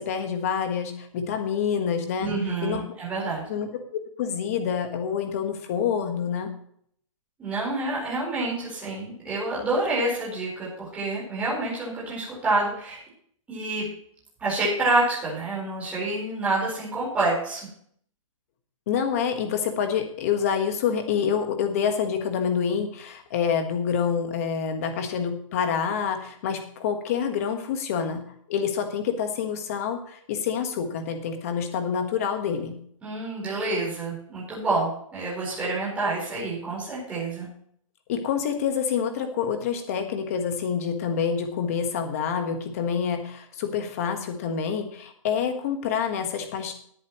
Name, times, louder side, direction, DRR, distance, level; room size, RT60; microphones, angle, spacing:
voice 1, 0.0-2.3 2.6-2.9 3.5-6.5 18.9-28.2 28.5-32.8 38.1-46.7, left 7 dB, 25° left, 6 dB, 1.4 m, -27 dB
voice 2, 2.2-3.4 7.4-13.0 13.5-13.9 14.4-17.7 33.0-37.5, right 2 dB, 10° right, -7 dB, 4.4 m, -28 dB
18.5 x 8.5 x 3.1 m, 0.64 s
hypercardioid pair, 175°, 17 cm